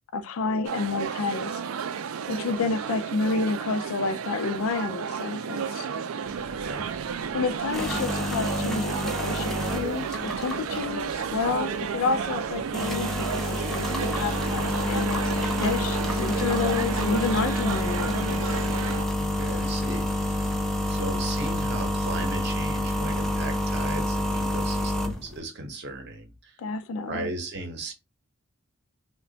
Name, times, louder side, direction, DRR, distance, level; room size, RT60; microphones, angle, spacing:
voice 1, 0.1-1.6 2.3-5.9 7.3-18.6 26.6-27.3, left 4 dB, 80° left, 0.4 m, -30 dB
sound 1, 0.6-19.0, right 7 dB, 80° right, 0.4 m, -32 dB
sound 2, 6.2-25.4, left 1 dB, ahead, 0.4 m, -29 dB
voice 2, 6.5-6.9 19.2-26.6 27.1-27.9, right 2 dB, 50° right, 0.7 m, -36 dB
3.2 x 2.2 x 3.8 m
head